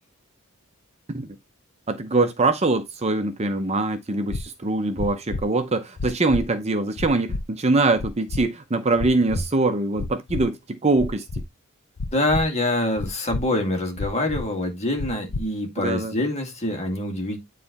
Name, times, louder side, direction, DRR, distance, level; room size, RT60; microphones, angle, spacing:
voice 1, 1.9-11.2 15.8-16.1, right 2 dB, 30° right, 0.7 m, -23 dB
sound 1, 4.3-4.4 5.0-5.4 6.0-6.4 7.0-7.4 8.0-8.4 9.0-9.4 10.0-10.4 11.0-11.4 12.0-12.4 13.0-13.4 14.0-14.4 15.0-15.4, left 3 dB, 80° left, 0.7 m, -29 dB
voice 2, 12.1-17.4, left 1 dB, 30° left, 2.3 m, -25 dB
9.4 x 3.3 x 4.1 m
head